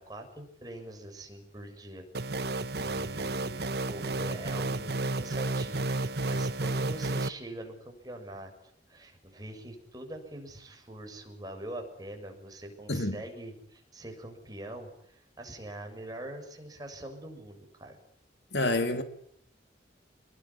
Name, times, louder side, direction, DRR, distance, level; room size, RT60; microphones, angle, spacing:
voice 1, 0.0-8.5 8.9-18.0, right 1 dB, 20° right, 7.0 m, -44 dB
sound 1, 2.1-7.3, right 2 dB, 60° right, 1.2 m, -31 dB
voice 2, 18.5-19.0, left 2 dB, 70° left, 2.8 m, -27 dB
27.0 x 22.0 x 9.8 m
head